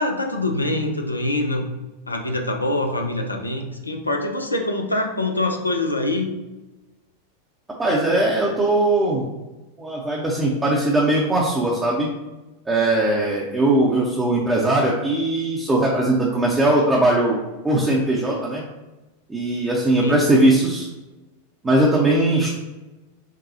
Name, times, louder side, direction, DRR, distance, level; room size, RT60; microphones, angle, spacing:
voice 1, 0.0-1.6 2.1-6.4 20.0-20.2, left 2 dB, 80° left, 3 dB, 0.6 m, -24 dB
voice 2, 7.8-9.2 9.8-12.1 12.7-17.4 17.6-18.6 19.3-20.9 21.6-22.5, right 1 dB, 15° right, -4 dB, 0.7 m, -19 dB
6.0 x 2.3 x 2.8 m, 1.1 s
figure-of-eight pair, 90°, 0 cm